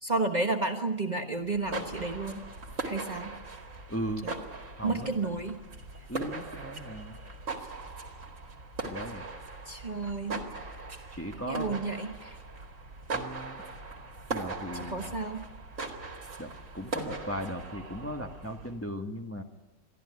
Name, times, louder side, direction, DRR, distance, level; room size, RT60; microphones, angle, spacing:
voice 1, 0.0-2.4 2.8-3.3 4.2-4.4 4.8-5.6 9.7-10.4 11.5-12.4 14.8-15.4, right 3 dB, 35° right, 4 dB, 1.4 m, -31 dB
sound 1, 1.5-18.8, right 3 dB, 70° right, 2.6 m, -40 dB
voice 2, 3.9-4.3 4.8-5.1 6.1-7.2 8.8-9.3 11.2-11.7 13.1-13.6 14.3-15.1 16.4-19.4, equal, 10° left, 3 dB, 1.5 m, -37 dB
23.5 x 14.0 x 9.6 m, 1.2 s
omnidirectional pair, 1.4 m